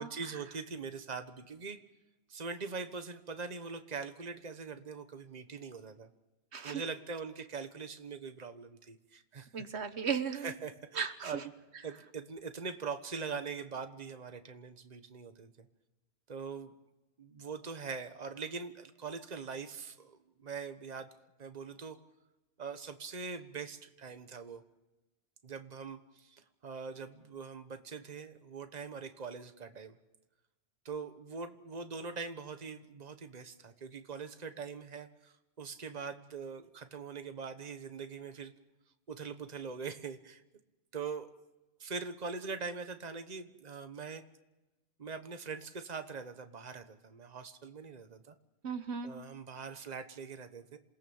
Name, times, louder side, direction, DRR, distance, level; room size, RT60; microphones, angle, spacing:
voice 1, 0.0-1.8 2.3-6.1 6.6-9.5 10.4-11.5 11.8-15.7 16.3-16.7 17.2-21.1 21.4-22.0 22.6-24.6 25.4-30.0 30.8-38.5 39.1-40.4 40.9-41.3 41.8-44.2 45.0-48.3 49.0-50.8, right 5 dB, 40° right, 8 dB, 1.3 m, -42 dB
voice 2, 6.5-6.8 9.5-10.5 11.0-11.4 48.6-49.1, right 6 dB, 80° right, 9 dB, 1.4 m, -35 dB
27.5 x 17.5 x 7.2 m, 1.0 s
omnidirectional pair, 1.1 m